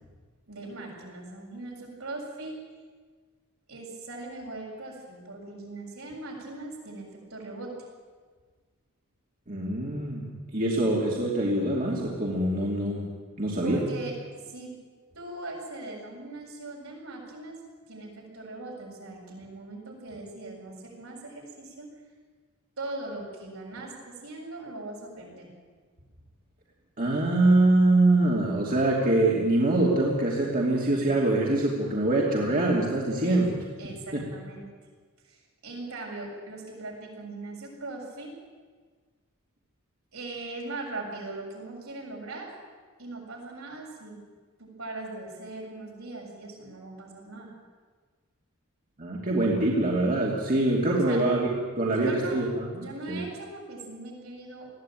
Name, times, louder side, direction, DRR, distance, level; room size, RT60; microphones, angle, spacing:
voice 1, 0.5-2.6 3.7-7.7 13.6-14.7 15.1-17.6 17.9-21.9 22.8-25.5 33.2-34.7 35.2-38.4 40.1-42.5 43.0-44.2 44.6-47.5 51.0-51.2 51.8-52.4 52.7-54.7, right 2 dB, 75° right, -2 dB, 7.4 m, -40 dB
voice 2, 9.5-10.2 10.5-13.0 13.4-13.8 27.0-33.5 34.1-34.2 49.0-52.7 53.1-53.2, right 2 dB, 40° right, -3 dB, 2.7 m, -24 dB
21.0 x 15.5 x 9.1 m, 1.5 s
head